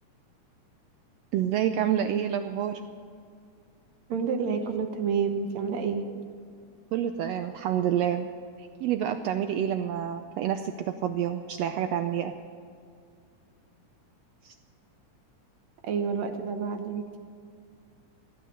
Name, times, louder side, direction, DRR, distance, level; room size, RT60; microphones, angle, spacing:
voice 1, 1.3-2.8 6.9-8.3 8.6-12.3 14.4-14.5, right 10 dB, 85° right, 8 dB, 1.4 m, -28 dB
voice 2, 4.1-6.1 15.8-17.2, right 6 dB, 70° right, 6 dB, 2.1 m, -29 dB
16.0 x 10.0 x 8.0 m, 2.2 s
omnidirectional pair, 3.6 m